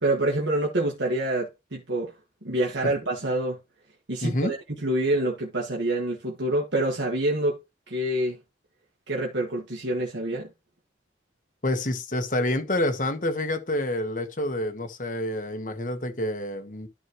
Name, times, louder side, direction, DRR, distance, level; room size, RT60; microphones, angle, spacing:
voice 1, 0.0-2.1 2.4-3.6 4.1-4.6 4.8-7.6 7.9-8.4 9.1-10.5, right 1 dB, 85° right, 1.6 m, -26 dB
voice 2, 4.2-4.5 11.6-16.9, left 1 dB, 45° left, 1.3 m, -28 dB
12.5 x 4.2 x 3.1 m
head